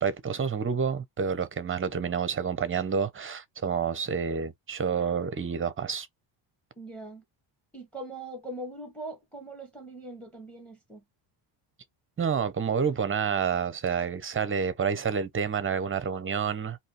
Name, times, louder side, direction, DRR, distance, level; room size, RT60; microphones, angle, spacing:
voice 1, 0.0-6.1 12.2-16.8, right 6 dB, 25° right, 0.9 m, -29 dB
voice 2, 6.8-7.2 7.7-11.0, right 1 dB, ahead, 2.1 m, -41 dB
4.1 x 3.0 x 3.2 m
cardioid pair, 100°, 50 cm